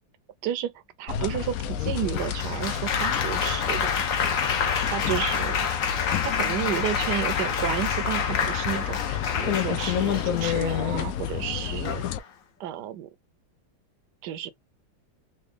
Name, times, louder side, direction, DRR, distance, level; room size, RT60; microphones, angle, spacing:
voice 1, 0.4-0.7 1.0-3.9 4.2-4.3 4.8-5.7 6.2-12.0 12.6-13.1 14.2-14.5, right 11 dB, 70° right, 1.1 m, -32 dB
sound 1, 1.1-12.2, left 10 dB, 90° left, 0.7 m, -30 dB
Applause, 2.2-11.0 11.8-12.2, left 6 dB, 55° left, 1.0 m, -28 dB
4.2 x 2.3 x 3.3 m
omnidirectional pair, 2.1 m